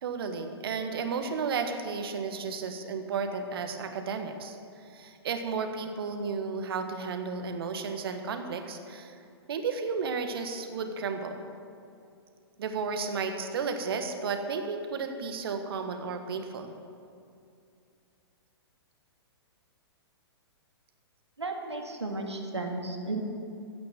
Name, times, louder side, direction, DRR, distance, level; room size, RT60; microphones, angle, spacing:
voice 1, 0.0-9.2 9.5-11.5 12.6-16.7, right 5 dB, 60° right, 6 dB, 1.4 m, -33 dB
voice 2, 21.4-23.2, right 2 dB, 90° right, 2 dB, 1.9 m, -34 dB
15.0 x 6.7 x 7.6 m, 2.5 s
figure-of-eight pair, 115°, 14 cm